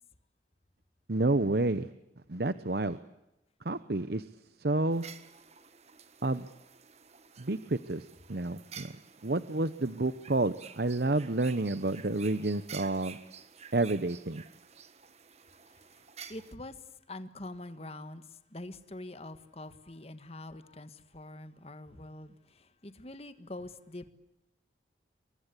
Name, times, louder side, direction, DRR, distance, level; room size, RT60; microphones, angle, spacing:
voice 1, 1.1-1.9 2.3-3.0 3.6-4.3 4.6-5.0 6.2-6.5 7.4-8.9 9.2-13.2 13.7-14.4, right 2 dB, 55° right, 0.9 m, -30 dB
sound 1, 4.9-16.5, right 7 dB, 35° right, 1.6 m, -51 dB
voice 2, 15.7-24.1, left 2 dB, 35° left, 1.6 m, -45 dB
28.0 x 24.0 x 8.4 m
head